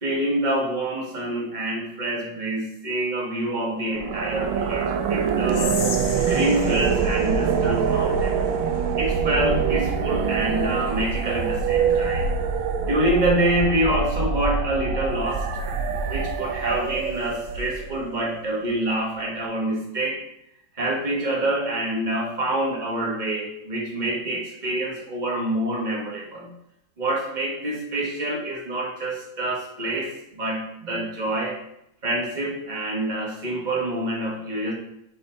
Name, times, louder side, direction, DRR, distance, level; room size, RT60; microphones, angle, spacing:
voice 1, 0.0-5.7 6.3-8.4 9.0-12.3 12.8-15.5 16.1-20.2 20.7-26.5 27.0-31.6 32.0-34.7, right 1 dB, 25° right, -3 dB, 1.2 m, -26 dB
sound 1, 3.9-18.0, right 6 dB, 85° right, 1.4 m, -25 dB
Whispering, 5.5-8.7, left 5 dB, 60° left, 0.6 m, -35 dB
5.2 x 4.1 x 4.4 m, 0.80 s
omnidirectional pair, 2.1 m